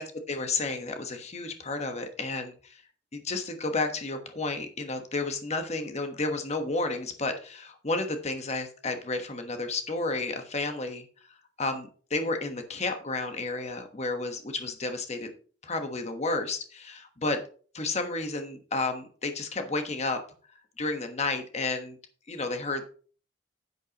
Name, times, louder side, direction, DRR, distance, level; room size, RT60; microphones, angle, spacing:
voice 1, 0.0-2.8 3.1-11.1 11.6-15.3 15.6-17.4 17.7-20.2 20.8-22.0 22.3-22.9, left 3 dB, 35° left, 6 dB, 1.2 m, -31 dB
10.0 x 9.5 x 3.0 m, 0.42 s
head